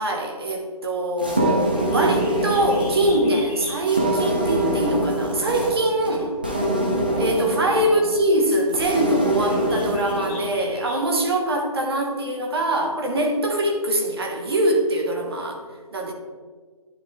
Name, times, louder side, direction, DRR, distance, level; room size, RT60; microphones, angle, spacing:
voice 1, 0.0-6.4 7.2-15.6 15.9-16.1, right 1 dB, 40° right, 2 dB, 1.2 m, -23 dB
sound 1, 1.2-10.7, right 1 dB, 15° right, 0.4 m, -25 dB
Bird, 1.7-11.3, left 2 dB, 10° left, 0.8 m, -44 dB
11.0 x 3.7 x 3.3 m, 1.5 s
hypercardioid pair, 170°, 20 cm